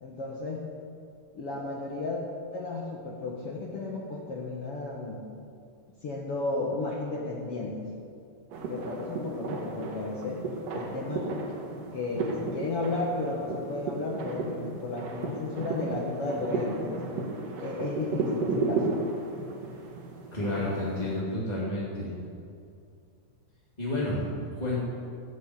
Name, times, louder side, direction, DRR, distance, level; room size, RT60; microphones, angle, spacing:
voice 1, 0.0-0.7 1.3-2.2 2.5-5.2 6.0-7.9 8.7-10.4 10.7-11.6 11.9-17.2 17.6-19.0, left 3 dB, 80° left, -2 dB, 1.3 m, -33 dB
sound 1, 8.5-21.2, right 3 dB, 60° right, 2.7 m, -34 dB
voice 2, 20.3-22.2 23.8-24.8, left 1 dB, 15° left, -8 dB, 1.8 m, -30 dB
17.5 x 7.7 x 8.2 m, 2.4 s
omnidirectional pair, 4.9 m